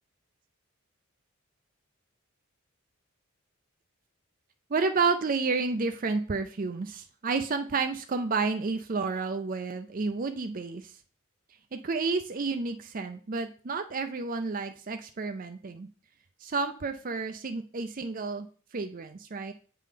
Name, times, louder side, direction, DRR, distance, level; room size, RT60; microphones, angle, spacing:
voice 1, 4.7-10.9 11.7-15.9 16.4-18.5 18.7-19.5, right 4 dB, 40° right, 7 dB, 0.5 m, -30 dB
7.7 x 3.8 x 5.0 m, 0.40 s
head